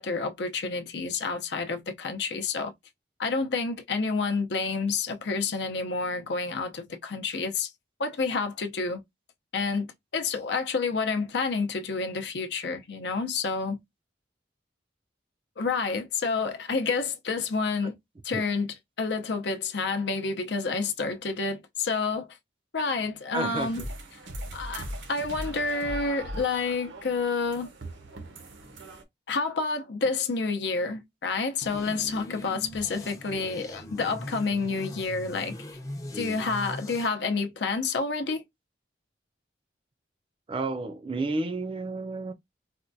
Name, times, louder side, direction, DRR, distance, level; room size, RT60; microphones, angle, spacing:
voice 1, 0.0-2.7 3.2-7.7 8.0-9.0 9.5-9.9 10.1-13.8 15.6-17.9 18.2-22.3 22.7-23.8 24.5-27.7 29.3-35.5 36.1-38.4, left 4 dB, 65° left, 0.6 m, -29 dB
voice 2, 23.3-23.9 36.1-36.4 40.5-42.3, right 3 dB, 30° right, 0.4 m, -31 dB
sound 1, 23.6-29.0, right 1 dB, 90° right, 0.9 m, -39 dB
sound 2, 31.6-37.1, left 1 dB, 20° left, 0.6 m, -40 dB
4.3 x 2.2 x 2.6 m
head